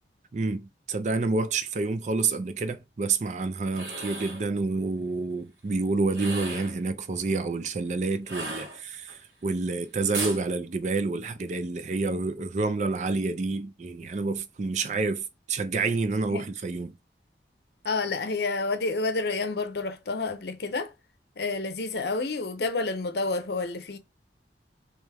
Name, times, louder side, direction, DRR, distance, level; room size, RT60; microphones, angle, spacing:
voice 1, 0.3-17.0, right 3 dB, 40° right, 0.4 m, -28 dB
sound 1, 3.6-4.5 6.1-6.8 8.2-9.1 10.1-10.4, right 2 dB, 80° right, 1.3 m, -35 dB
voice 2, 17.8-20.9 21.4-24.0, left 3 dB, 65° left, 0.6 m, -29 dB
3.4 x 3.1 x 3.3 m
head